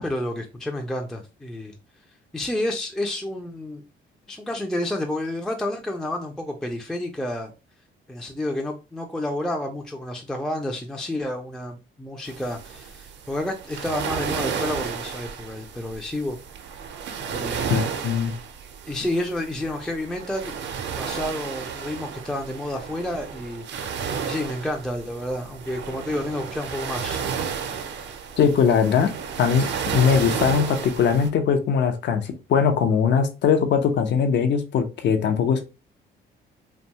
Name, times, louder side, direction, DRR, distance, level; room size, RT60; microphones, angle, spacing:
voice 1, 0.0-1.7 2.3-3.8 4.3-7.5 8.1-16.4 17.3-17.9 18.9-20.5 21.0-27.2, left 1 dB, 5° left, 0.4 m, -30 dB
sound 1, 12.3-31.3, right 7 dB, 65° right, 0.5 m, -32 dB
voice 2, 17.7-18.3 28.4-29.1 29.4-29.7 29.9-35.6, left 6 dB, 65° left, 0.5 m, -20 dB
2.6 x 2.2 x 2.8 m
cardioid pair, 90°, 20 cm